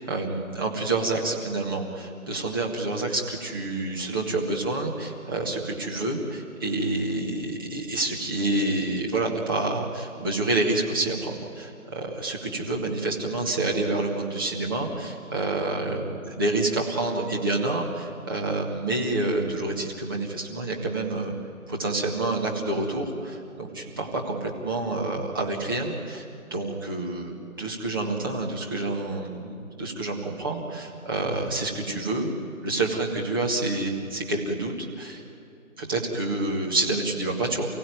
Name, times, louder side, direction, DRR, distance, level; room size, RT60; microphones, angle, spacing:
voice 1, 0.0-21.3 21.7-26.3 26.5-32.3 32.6-35.2 35.8-37.7, right 2 dB, 15° right, -2 dB, 1.8 m, -28 dB
29.0 x 16.5 x 9.5 m, 2.7 s
figure-of-eight pair, 165°, 42 cm